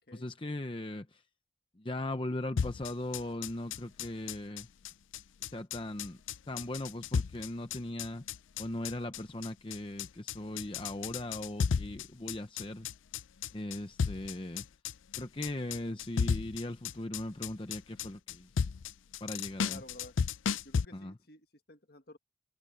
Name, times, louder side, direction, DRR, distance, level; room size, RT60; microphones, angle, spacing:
voice 1, 0.1-1.2 1.8-4.7 5.5-6.2 6.5-8.2 8.6-12.9 13.5-14.6 15.2-18.5 19.2-19.8 20.9-21.1, left 1 dB, 25° left, 0.7 m, -39 dB
sound 1, 2.6-20.8, left 6 dB, 90° left, 0.5 m, -34 dB
voice 2, 19.7-20.2 20.6-22.2, left 1 dB, 50° left, 1.7 m, -53 dB
head